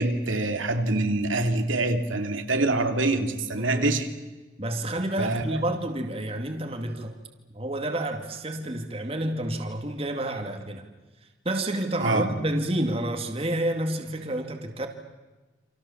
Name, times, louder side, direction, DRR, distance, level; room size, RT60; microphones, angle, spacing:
voice 1, 0.0-4.1 5.2-5.6 12.0-12.3, right 2 dB, 85° right, 2.7 m, -25 dB
voice 2, 3.5-3.9 4.6-7.2 7.5-10.8 11.4-14.9, right 1 dB, 30° right, 2.3 m, -29 dB
28.5 x 27.5 x 7.2 m
head